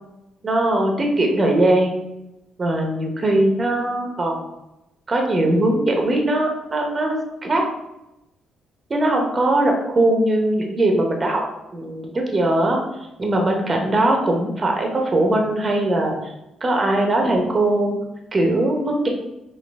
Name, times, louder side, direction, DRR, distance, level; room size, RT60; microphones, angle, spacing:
voice 1, 0.4-2.0 2.6-4.4 5.1-7.1 7.4-7.6 8.9-11.4 11.7-12.8 13.2-16.3 16.6-18.0 18.3-19.1, right 1 dB, 30° right, 2 dB, 0.9 m, -20 dB
5.0 x 2.6 x 3.5 m, 0.90 s
cardioid pair, 90°, 0 cm